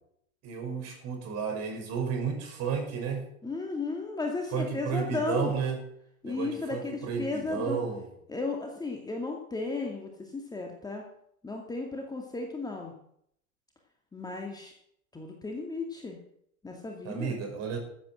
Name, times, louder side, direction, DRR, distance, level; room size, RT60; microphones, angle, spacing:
voice 1, 0.4-3.3 4.5-5.8 6.2-8.1 17.0-17.8, right 6 dB, 35° right, 4 dB, 5.8 m, -32 dB
voice 2, 3.4-5.5 6.2-7.8 8.3-11.0 11.4-12.9 14.1-14.7 15.1-16.2 16.6-17.3, left 3 dB, 10° left, 1 dB, 2.2 m, -34 dB
14.0 x 8.8 x 7.7 m, 0.71 s
hypercardioid pair, 110°, 43 cm